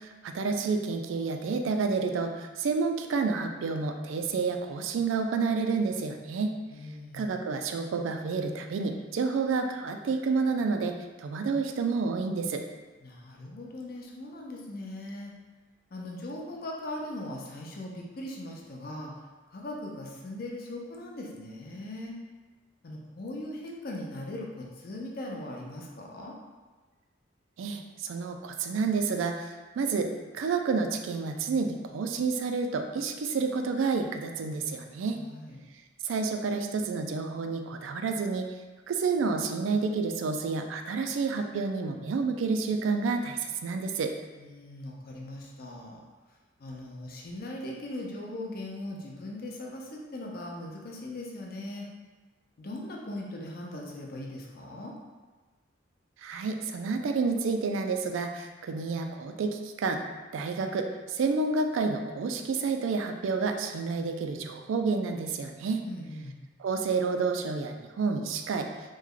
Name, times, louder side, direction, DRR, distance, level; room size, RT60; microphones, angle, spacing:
voice 1, 0.0-6.6 7.1-12.6 27.6-35.2 36.0-38.5 38.9-44.1 56.2-60.0 60.3-65.8 66.6-68.7, right 4 dB, 85° right, 5 dB, 0.3 m, -29 dB
voice 2, 6.7-7.3 13.0-15.3 15.9-19.1 19.5-22.1 22.8-26.3 35.2-35.6 44.4-46.0 46.6-51.9 52.6-54.9 65.8-66.4, left 1 dB, 50° left, -1 dB, 0.5 m, -39 dB
3.1 x 2.2 x 3.6 m, 1.3 s
head